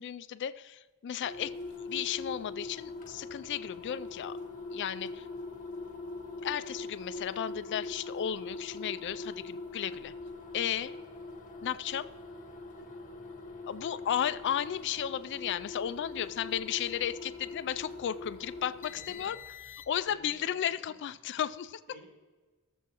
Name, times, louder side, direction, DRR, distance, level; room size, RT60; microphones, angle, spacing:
voice 1, 0.0-1.5 1.9-4.4 4.7-5.2 6.4-10.1 10.5-10.9 11.6-12.1 13.7-19.4 19.9-21.8, left 9 dB, 55° left, 15 dB, 0.3 m, -34 dB
sound 1, 1.2-20.2, left 3 dB, 40° left, 1.6 m, -43 dB
voice 2, 16.1-16.9 18.9-19.3 20.1-20.6 20.8-21.0 21.9-22.0, equal, 50° right, -2 dB, 2.8 m, -55 dB
18.5 x 7.2 x 3.0 m, 1.3 s
head